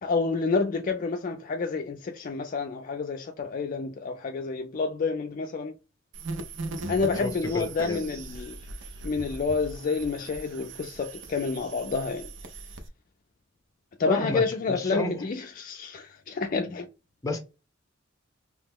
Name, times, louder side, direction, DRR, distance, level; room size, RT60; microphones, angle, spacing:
voice 1, 0.0-5.7 6.9-8.6 9.0-12.3 14.0-16.9, left 4 dB, 40° left, 0.3 m, -29 dB
sound 1, 6.1-12.9, right 2 dB, 60° right, 0.5 m, -39 dB
voice 2, 7.2-8.2 14.1-15.2 17.2-17.4, left 2 dB, 15° left, 0.7 m, -31 dB
2.9 x 2.1 x 3.5 m
head